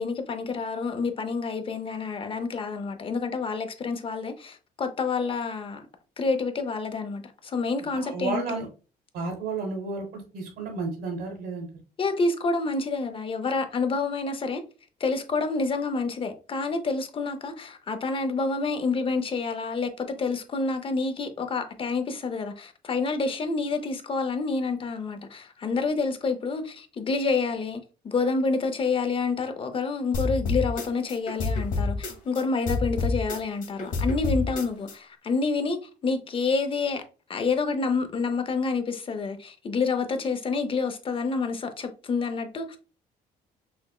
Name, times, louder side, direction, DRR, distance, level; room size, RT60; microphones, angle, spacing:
voice 1, 0.0-5.9 6.2-8.6 12.0-14.6 15.0-37.0 37.3-42.8, left 4 dB, 30° left, 0.6 m, -28 dB
voice 2, 7.9-8.7 9.1-11.7, right 4 dB, 75° right, 1.2 m, -32 dB
sound 1, 30.1-32.4 32.7-34.9, left 3 dB, 55° left, 1.1 m, -28 dB
5.7 x 2.1 x 2.3 m
cardioid pair, 110°, 17 cm